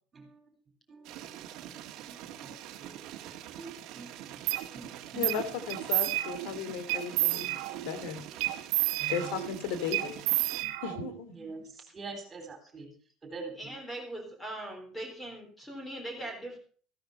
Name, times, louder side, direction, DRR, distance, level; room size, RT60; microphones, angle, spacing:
voice 1, 0.1-0.4 0.9-4.4 4.7-5.4 6.7-6.8 7.4-7.6 8.2-8.3 9.0-9.4 10.6-10.7 11.3-12.9 13.2-13.8 16.2-16.3, right 4 dB, 20° right, 6 dB, 4.3 m, -46 dB
sound 1, 1.0-10.6, right 12 dB, 45° right, 1.9 m, -45 dB
sound 2, 4.5-4.6 5.2-5.4 5.7-6.5 6.9-7.9 8.4-9.5 9.9-11.2, right 19 dB, 80° right, 1.8 m, -30 dB
voice 2, 5.1-7.6 7.8-8.2 9.1-10.2 10.8-11.4, left 7 dB, 80° left, 12 dB, 2.7 m, -35 dB
voice 3, 13.6-16.6, right 1 dB, 10° left, 4 dB, 3.9 m, -40 dB
15.0 x 13.0 x 5.5 m, 0.43 s
cardioid pair, 180°, 0 cm